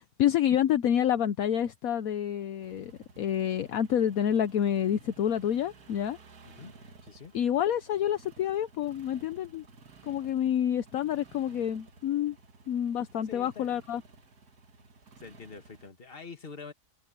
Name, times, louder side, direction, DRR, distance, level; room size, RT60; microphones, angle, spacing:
voice 1, 0.0-2.9 3.2-6.2 7.3-9.6 10.0-12.4 12.7-14.0, left 10 dB, 70° left, 1.1 m, -28 dB
sound 1, 2.6-15.9, right 4 dB, 75° right, 2.2 m, -55 dB
voice 2, 7.0-7.3 13.2-13.8 15.2-16.7, left 5 dB, 35° left, 2.0 m, -45 dB
omnidirectional pair, 1.6 m